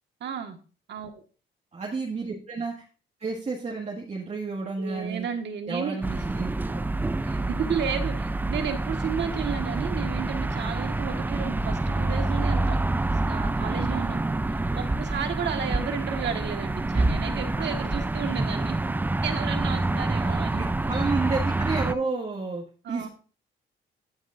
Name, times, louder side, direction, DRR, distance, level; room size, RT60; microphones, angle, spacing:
voice 1, 0.2-0.6 0.9-1.1 4.8-6.0 7.0-12.8 13.2-18.8 19.2-20.6 22.8-23.1, right 7 dB, 60° right, 5 dB, 1.6 m, -33 dB
voice 2, 1.7-2.8 3.2-5.3 5.7-6.8 14.7-15.0 20.1-22.6 22.9-23.1, right 3 dB, 35° right, -2 dB, 1.7 m, -31 dB
sound 1, 6.0-21.9, right 2 dB, 10° right, 0.4 m, -27 dB
14.5 x 7.1 x 2.5 m, 0.38 s
cardioid pair, 90°, 20 cm